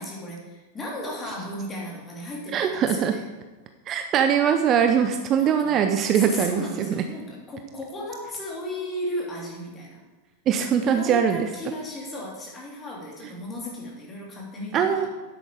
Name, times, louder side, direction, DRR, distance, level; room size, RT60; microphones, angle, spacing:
voice 1, 0.0-3.2 5.4-5.8 6.1-10.0 10.8-15.1, left 1 dB, 20° left, -3 dB, 3.5 m, -35 dB
voice 2, 2.5-3.1 3.9-6.9 10.5-11.5 14.7-15.1, right 8 dB, 30° right, 6 dB, 0.7 m, -22 dB
10.0 x 8.2 x 4.9 m, 1.2 s
figure-of-eight pair, 90°, 0 cm